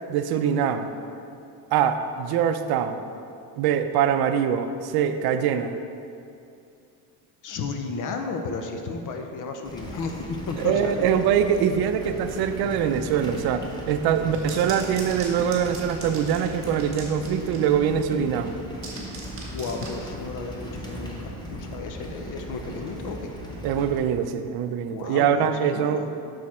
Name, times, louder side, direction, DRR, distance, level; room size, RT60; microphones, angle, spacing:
voice 1, 0.1-0.9 1.7-3.0 3.6-5.8 10.6-18.6 23.6-26.0, right 8 dB, 65° right, 9 dB, 0.6 m, -23 dB
voice 2, 7.4-11.2 14.2-15.1 19.4-23.3 24.9-26.1, left 4 dB, 50° left, 4 dB, 0.6 m, -34 dB
sound 1, 9.6-24.0, equal, 10° left, 0.9 m, -38 dB
sound 2, 14.1-17.8 18.5-20.0, right 3 dB, 30° right, 1.5 m, -40 dB
6.4 x 6.2 x 4.3 m, 2.6 s
cardioid pair, 135°, 41 cm